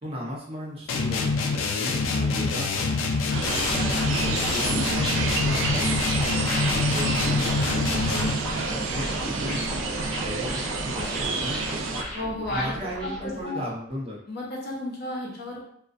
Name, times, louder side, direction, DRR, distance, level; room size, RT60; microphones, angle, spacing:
voice 1, 0.0-3.0 3.5-6.2 6.9-11.8 12.5-14.2, left 1 dB, 30° right, -5 dB, 0.6 m, -36 dB
sound 1, 0.9-8.5, left 4 dB, 90° left, 0.3 m, -26 dB
sound 2, 3.3-12.0, right 4 dB, 90° right, 0.3 m, -29 dB
sound 3, 3.4-13.4, equal, 5° left, 0.8 m, -35 dB
voice 2, 12.1-12.7 13.0-13.1 13.4-13.6 14.3-15.6, left 1 dB, 55° left, -4 dB, 0.7 m, -32 dB
2.4 x 2.1 x 2.4 m, 0.67 s
head